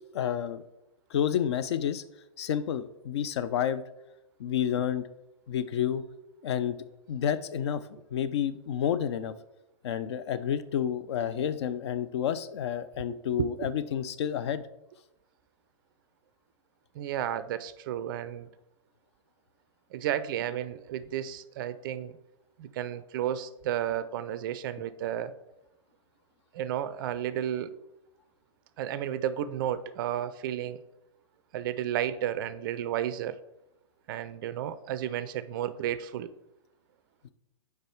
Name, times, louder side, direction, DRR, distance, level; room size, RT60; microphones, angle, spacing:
voice 1, 0.1-0.6 1.1-2.0 2.4-3.8 4.4-5.1 5.5-6.0 6.4-6.8 7.1-9.3 9.8-14.6, left 9 dB, 55° left, 13 dB, 0.4 m, -30 dB
voice 2, 17.0-18.5 19.9-22.2 22.6-25.3 26.5-27.7 28.8-30.8 31.5-33.4 34.1-36.3, right 11 dB, 40° right, 14 dB, 0.4 m, -32 dB
4.7 x 4.7 x 4.5 m, 0.90 s
figure-of-eight pair, 115°, 17 cm